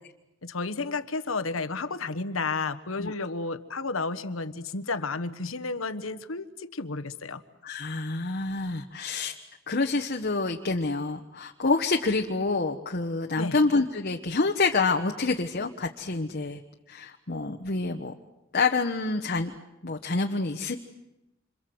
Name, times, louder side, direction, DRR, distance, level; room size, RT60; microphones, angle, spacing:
voice 1, 0.4-7.4 13.4-13.6, left 3 dB, 85° left, 10 dB, 1.3 m, -32 dB
voice 2, 7.6-9.3 9.7-16.6 16.9-18.1 18.5-19.5 19.8-20.7, left 3 dB, 50° left, 3 dB, 1.2 m, -27 dB
27.5 x 27.0 x 7.9 m, 0.94 s
head